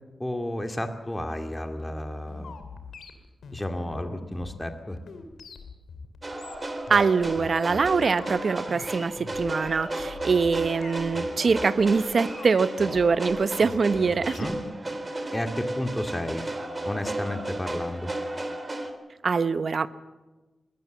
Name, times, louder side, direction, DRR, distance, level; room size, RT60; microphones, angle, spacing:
voice 1, 0.2-2.6 3.5-5.0 14.4-14.6 15.3-16.4 16.8-18.1, left 1 dB, 15° left, 5 dB, 2.3 m, -32 dB
sound 1, 1.8-14.6, left 4 dB, 85° left, 2.6 m, -44 dB
sound 2, 6.2-18.9, right 1 dB, 30° right, 3.3 m, -34 dB
voice 2, 6.9-14.4 19.2-19.9, right 5 dB, 60° right, 13 dB, 1.0 m, -23 dB
21.5 x 18.5 x 7.3 m, 1.2 s
cardioid pair, 60°, 0 cm